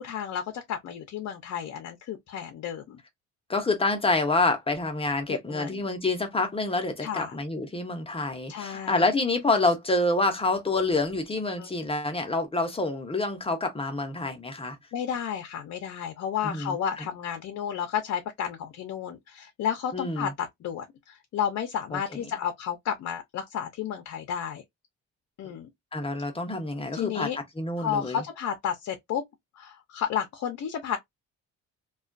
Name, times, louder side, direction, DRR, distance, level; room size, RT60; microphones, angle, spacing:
voice 1, 0.0-3.0 5.3-5.8 7.0-7.4 8.5-9.1 11.6-11.7 14.9-24.6 25.4-25.7 26.9-27.4 27.8-29.2 29.6-31.0, left 8 dB, 60° left, 0.6 m, -32 dB
voice 2, 3.5-14.8 16.4-16.8 19.9-20.3 21.9-22.0 25.9-27.3 27.6-28.2, left 2 dB, 20° left, 0.7 m, -27 dB
2.3 x 2.2 x 2.4 m
cardioid pair, 90°, 30 cm